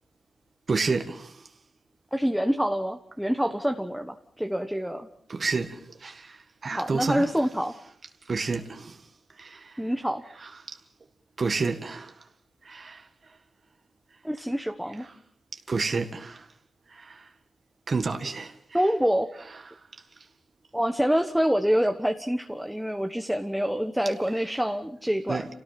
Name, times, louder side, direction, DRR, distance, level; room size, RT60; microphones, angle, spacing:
voice 1, 0.7-1.4 5.3-7.3 8.3-9.0 9.4-9.8 10.4-10.8 11.4-12.1 12.6-13.1 15.0-15.1 15.7-16.5 16.9-17.3 17.9-18.8 25.3-25.5, right 4 dB, 45° right, 1.9 m, -30 dB
voice 2, 2.1-5.1 6.7-7.8 9.8-10.2 14.2-15.1 18.7-19.3 20.7-25.5, equal, ahead, 1.3 m, -26 dB
29.0 x 18.0 x 5.9 m
wide cardioid pair, 110°, 0 cm